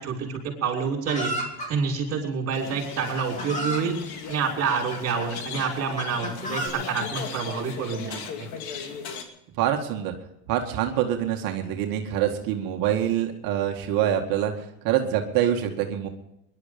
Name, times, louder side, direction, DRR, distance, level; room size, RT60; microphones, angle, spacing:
voice 1, 0.0-1.3 1.7-3.9 4.3-8.5, right 5 dB, 35° right, 0 dB, 6.1 m, -28 dB
Chicken rooster, 1.1-1.7 2.6-2.7 3.2-3.9 4.7-5.3 6.0-6.7, right 1 dB, 15° left, 3.5 m, -32 dB
sound 1, 2.5-9.2, left 7 dB, 70° left, 2.7 m, -37 dB
voice 2, 9.6-10.1 10.5-16.1, right 10 dB, 50° right, 3 dB, 2.1 m, -25 dB
21.0 x 12.0 x 5.3 m, 0.83 s
supercardioid pair, 130°, 44 cm